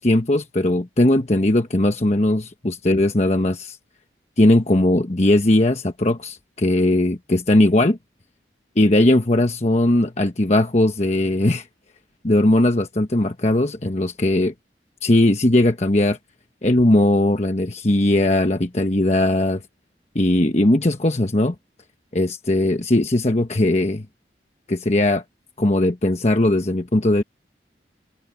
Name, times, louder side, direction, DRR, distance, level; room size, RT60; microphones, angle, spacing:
voice 1, 0.0-3.8 4.4-8.0 8.8-11.7 12.2-14.5 15.0-16.2 16.6-19.6 20.1-21.5 22.1-24.0 24.7-25.2 25.6-27.2, left 1 dB, 40° left, 1.1 m, -19 dB
head